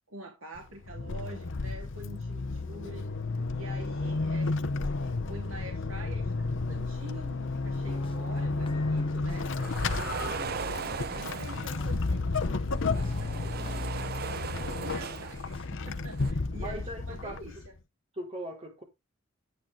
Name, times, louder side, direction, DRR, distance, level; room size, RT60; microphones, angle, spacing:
voice 1, 0.1-3.1 3.5-4.6 5.0-10.5 10.8-14.5 14.8-17.7, right 1 dB, 75° right, 2.9 m, -46 dB
Vehicle / Accelerating revving vroom / Squeak, 0.6-17.8, left 3 dB, 60° left, 0.9 m, -32 dB
sound 1, 7.7-14.4 14.9-15.0 15.5-15.7, left 2 dB, 25° left, 1.1 m, -49 dB
sound 2, 9.4-12.0 12.7-15.6 15.9-16.3, right 6 dB, 50° right, 0.6 m, -38 dB
voice 2, 14.8-15.1 16.6-17.6 18.1-18.8, right 1 dB, 30° right, 4.9 m, -40 dB
11.0 x 9.0 x 3.8 m
head